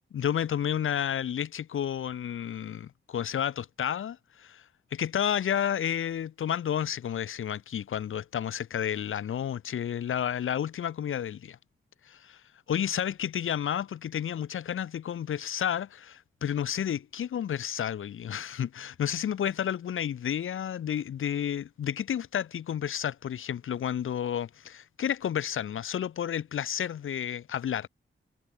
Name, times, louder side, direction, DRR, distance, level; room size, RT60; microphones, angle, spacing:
voice 1, 0.1-4.6 4.9-11.6 12.1-12.4 12.7-27.9, left 9 dB, 75° left, 0.6 m, -31 dB
wide cardioid pair, 175°, 21 cm